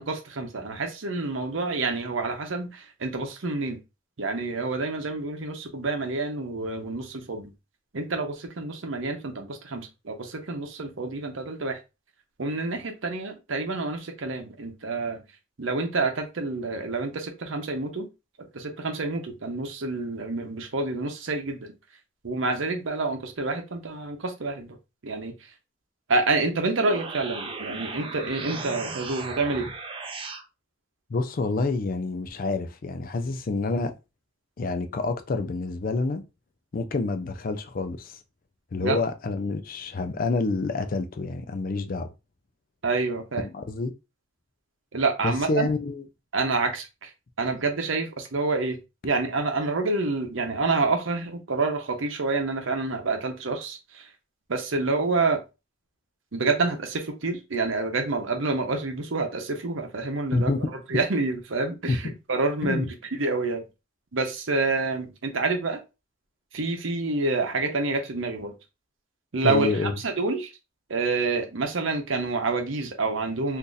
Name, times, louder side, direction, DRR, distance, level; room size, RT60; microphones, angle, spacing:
voice 1, 0.0-3.8 4.2-7.5 7.9-11.8 12.4-15.2 15.6-18.0 18.5-21.7 22.2-24.8 25.0-25.3 26.1-29.7 38.8-39.0 42.8-43.4 44.9-45.7 46.3-47.1 47.4-54.1 54.5-55.4 56.3-60.5 60.9-63.6 64.1-65.8 66.5-68.5 69.3-70.5 70.9-73.6, right 3 dB, 65° right, 0.7 m, -28 dB
sound 1, 26.6-30.4, right 3 dB, 25° right, 0.4 m, -36 dB
voice 2, 31.1-33.9 34.6-36.2 36.7-38.2 38.7-42.1 43.4-43.9 45.2-46.0 60.3-60.6 61.9-62.0 62.6-62.9 69.4-69.9, left 3 dB, 40° left, 0.4 m, -28 dB
2.6 x 2.4 x 3.9 m
head